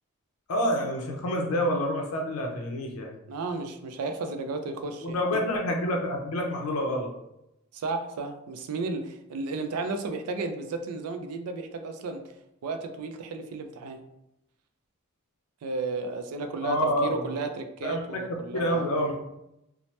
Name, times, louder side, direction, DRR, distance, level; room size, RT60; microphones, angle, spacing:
voice 1, 0.5-3.1 5.0-7.1 16.6-17.3 17.8-18.2 18.5-19.2, equal, 80° left, 1 dB, 0.5 m, -28 dB
voice 2, 3.3-5.4 7.7-12.2 12.6-14.0 15.6-19.2, right 3 dB, 85° right, 7 dB, 0.4 m, -33 dB
3.1 x 2.0 x 2.8 m, 0.86 s
head